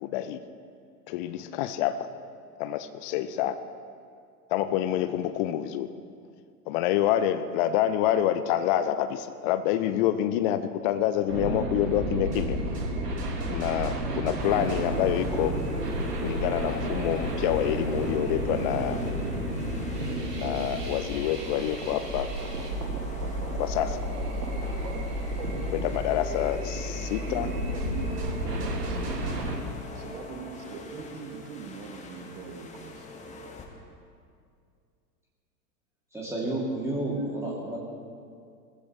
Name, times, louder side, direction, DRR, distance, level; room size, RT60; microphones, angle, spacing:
voice 1, 0.0-0.4 1.1-2.1 2.6-3.6 4.5-5.9 6.7-12.6 13.5-15.5 16.2-19.0 20.4-22.3 23.6-24.0 25.7-27.5, left 11 dB, 35° left, 11 dB, 0.6 m, -27 dB
sound 1, 11.3-29.6, right 1 dB, 80° right, 2.3 m, -31 dB
sound 2, 14.4-33.6, left 3 dB, 15° left, 1.9 m, -44 dB
voice 2, 27.2-29.4 29.9-33.1, right 5 dB, 45° right, 3 dB, 1.8 m, -43 dB
voice 3, 36.1-37.8, right 1 dB, 5° right, -6 dB, 2.8 m, -30 dB
21.0 x 14.5 x 3.2 m, 2.3 s
figure-of-eight pair, 95°, 47 cm